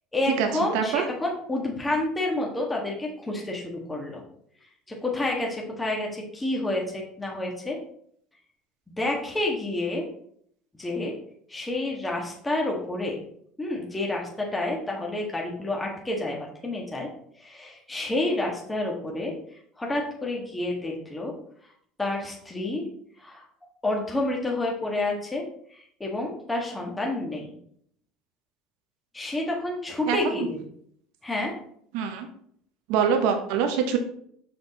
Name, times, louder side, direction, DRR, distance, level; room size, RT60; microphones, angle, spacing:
voice 1, 0.1-4.2 4.9-7.8 9.0-10.0 10.8-11.1 11.5-13.2 13.6-17.1 17.4-19.3 19.8-21.3 22.0-22.8 23.2-23.4 23.8-25.4 25.7-27.5 29.1-30.6 31.2-31.5, left 2 dB, 15° left, -1 dB, 1.6 m, -29 dB
voice 2, 0.7-1.0 30.1-30.5 31.9-32.3 32.9-34.0, right 7 dB, 75° right, 5 dB, 0.9 m, -24 dB
6.2 x 5.1 x 4.1 m, 0.66 s
supercardioid pair, 95°, 0 cm